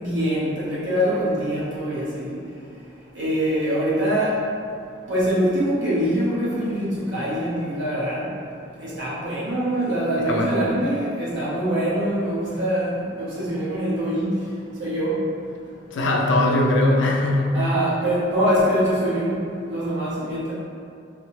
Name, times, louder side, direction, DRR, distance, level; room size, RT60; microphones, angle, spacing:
voice 1, 0.0-2.3 3.1-4.4 5.1-8.3 8.8-14.3 14.8-15.1 17.5-19.3 19.7-20.5, equal, 75° right, -9 dB, 1.0 m, -24 dB
voice 2, 10.3-10.6 15.9-17.7, left 1 dB, 80° left, 0 dB, 0.4 m, -20 dB
3.1 x 2.0 x 3.2 m, 2.4 s
head